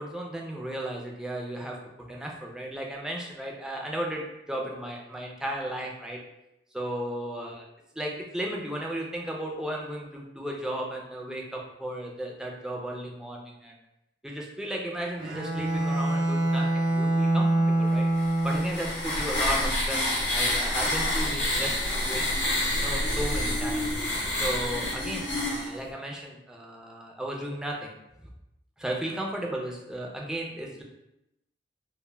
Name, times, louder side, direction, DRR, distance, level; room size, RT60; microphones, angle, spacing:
voice 1, 0.0-1.8 2.1-6.2 6.7-7.7 7.9-13.8 14.2-18.0 18.4-22.4 22.8-23.9 24.4-27.9 28.8-30.8, right 1 dB, 5° right, -1 dB, 0.4 m, -35 dB
Bowed string instrument, 15.2-19.0, right 2 dB, 70° right, 0.4 m, -25 dB
sound 1, 18.2-25.7, left 1 dB, 85° left, 0.7 m, -28 dB
2.2 x 2.1 x 3.1 m, 0.87 s
head